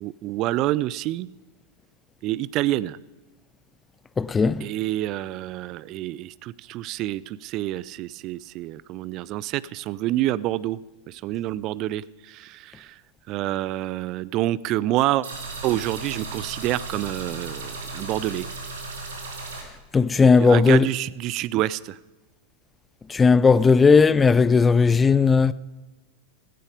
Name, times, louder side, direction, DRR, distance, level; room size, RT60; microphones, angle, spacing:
voice 1, 0.0-1.3 2.2-3.0 4.6-10.8 11.1-12.9 13.3-15.3 15.6-18.5 20.4-22.0, right 15 dB, 40° right, 0.5 m, -27 dB
voice 2, 4.2-4.6 19.9-20.9 23.1-25.5, left 5 dB, 15° left, 0.5 m, -16 dB
sound 1, 15.2-19.6, right 3 dB, 65° right, 3.4 m, -35 dB
16.0 x 15.5 x 5.0 m
figure-of-eight pair, 90°, 0 cm